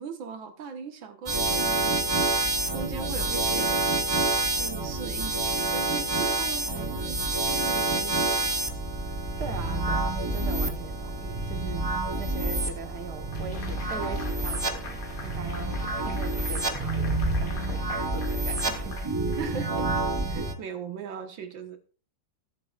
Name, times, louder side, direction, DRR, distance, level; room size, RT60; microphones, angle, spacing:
voice 1, 0.0-3.8 4.6-8.6 19.3-21.8, right 6 dB, 75° right, 2.0 m, -39 dB
sound 1, 1.3-20.5, right 2 dB, 30° right, 0.4 m, -28 dB
voice 2, 9.4-11.9 12.2-19.0, right 6 dB, 60° right, 1.7 m, -40 dB
sound 2, 13.3-19.8, left 5 dB, 50° left, 1.6 m, -44 dB
21.0 x 7.7 x 2.4 m
omnidirectional pair, 2.1 m